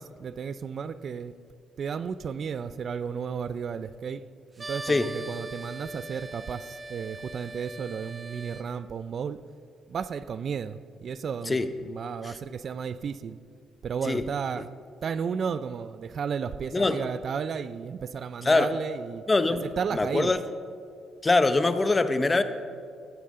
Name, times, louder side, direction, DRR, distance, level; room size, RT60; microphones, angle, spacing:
voice 1, 0.0-1.3 1.8-4.3 4.6-9.4 9.9-13.4 13.8-14.7 15.0-19.2 19.6-20.3, right 6 dB, 55° right, 0.4 m, -33 dB
sound 1, 4.6-8.6, right 2 dB, 30° right, 0.9 m, -41 dB
voice 2, 16.7-17.0 18.4-18.7 19.3-19.6 19.9-20.4 21.2-22.4, left 3 dB, 25° left, 0.8 m, -23 dB
15.0 x 13.5 x 3.7 m
cardioid pair, 90°, 0 cm